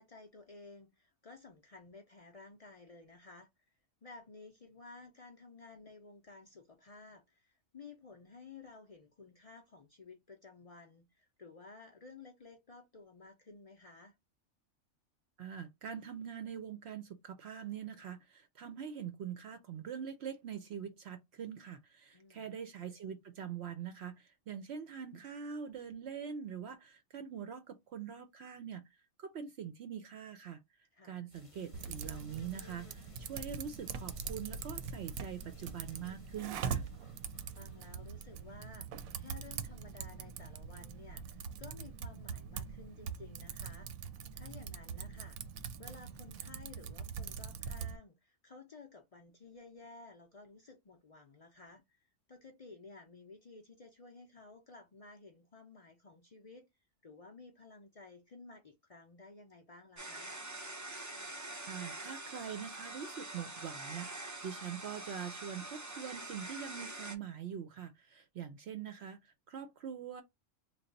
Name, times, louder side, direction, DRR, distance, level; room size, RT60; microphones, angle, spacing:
voice 1, 0.0-3.5 4.0-14.1 22.1-22.5 30.9-31.2 37.6-43.9 44.3-45.4 45.8-56.7 57.0-60.3, left 3 dB, 70° left, 0.3 m, -54 dB
voice 2, 15.4-28.9 29.2-30.6 31.0-36.8 61.7-70.2, right 8 dB, 65° right, 0.7 m, -44 dB
sound 1, 31.3-38.9, left 2 dB, 30° left, 0.7 m, -61 dB
Typing, 31.7-48.0, right 6 dB, 90° right, 1.0 m, -43 dB
sound 2, 60.0-67.2, right 2 dB, 25° right, 0.3 m, -45 dB
3.3 x 2.2 x 3.9 m
omnidirectional pair, 1.4 m